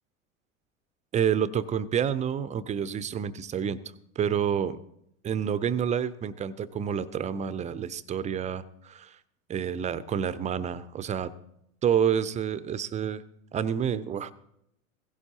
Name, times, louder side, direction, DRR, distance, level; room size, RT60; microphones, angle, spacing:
voice 1, 1.1-3.8 4.2-4.8 5.2-9.2 9.5-11.3 11.8-13.2 13.5-14.3, right 8 dB, 15° right, 16 dB, 0.5 m, -28 dB
16.5 x 16.5 x 2.8 m, 0.79 s
figure-of-eight pair, 85°, 41 cm